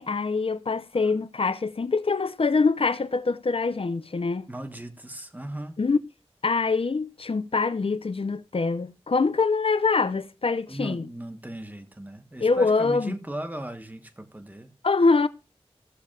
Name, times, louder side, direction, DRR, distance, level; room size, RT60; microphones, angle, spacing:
voice 1, 0.0-4.5 5.8-6.0 6.4-11.1 12.4-13.1 14.8-15.3, left 4 dB, 60° left, 0.6 m, -24 dB
voice 2, 4.5-5.8 10.7-14.7, right 1 dB, 15° right, 1.2 m, -37 dB
16.0 x 6.9 x 2.4 m
wide cardioid pair, 60°, 11 cm